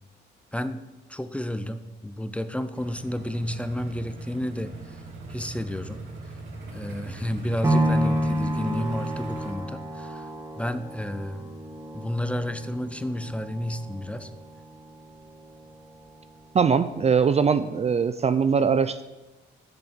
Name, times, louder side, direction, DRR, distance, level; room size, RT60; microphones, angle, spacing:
voice 1, 1.1-5.0 5.3-6.0 6.7-10.3 10.6-11.5 11.9-14.3, left 1 dB, 5° left, 11 dB, 0.6 m, -31 dB
sound 1, 2.7-9.5, right 2 dB, 70° right, 3.5 m, -40 dB
sound 2, 7.6-15.7 16.2-16.3, right 1 dB, 15° right, 2.1 m, -30 dB
voice 2, 16.5-19.0, right 6 dB, 35° right, 12 dB, 0.4 m, -21 dB
8.0 x 6.9 x 7.4 m, 1.1 s
cardioid pair, 90°, 20 cm